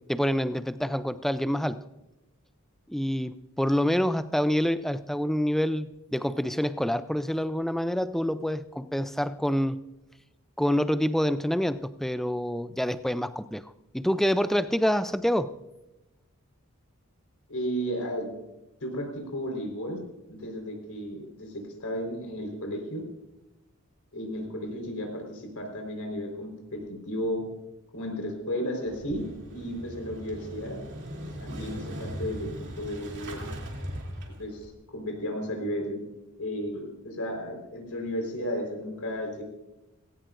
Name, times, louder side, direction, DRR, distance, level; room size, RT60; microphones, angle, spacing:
voice 1, 0.1-1.9 2.9-9.8 10.6-13.6 13.9-15.5, equal, ahead, 0.4 m, -27 dB
voice 2, 17.5-18.3 18.8-20.0 20.3-23.0 24.1-27.4 27.9-29.2 29.5-30.8 31.4-32.5 32.8-33.5 34.4-36.0 36.4-39.4, equal, 80° left, 4.2 m, -33 dB
Motorcycle / Engine starting, 28.8-34.7, equal, 50° right, 2.8 m, -39 dB
19.0 x 17.0 x 2.5 m
head